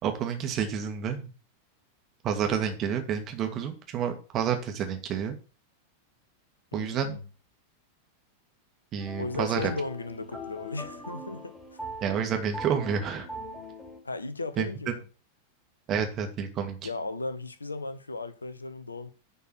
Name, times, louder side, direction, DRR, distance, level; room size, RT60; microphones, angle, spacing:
voice 1, 0.0-1.3 2.2-5.4 6.7-7.1 8.9-9.7 12.0-13.3 14.6-14.7 15.9-16.8, right 7 dB, 30° right, 1.9 m, -29 dB
voice 2, 6.7-7.2 9.1-11.5 14.0-15.0 16.8-19.1, left 3 dB, 80° left, 0.9 m, -36 dB
sound 1, 9.0-14.0, equal, 5° left, 3.0 m, -41 dB
10.5 x 4.6 x 6.2 m
figure-of-eight pair, 90°, 0 cm